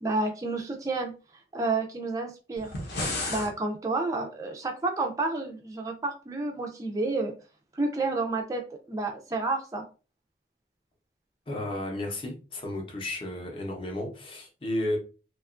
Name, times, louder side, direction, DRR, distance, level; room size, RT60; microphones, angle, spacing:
voice 1, 0.0-1.1 1.5-2.7 3.3-7.3 7.7-9.8, right 3 dB, 20° right, 2 dB, 0.3 m, -30 dB
sound 1, 2.6-3.5, left 2 dB, 65° left, 0.7 m, -32 dB
voice 2, 11.5-15.0, left 1 dB, 30° left, 1 dB, 0.6 m, -33 dB
2.8 x 2.3 x 2.4 m, 0.34 s
head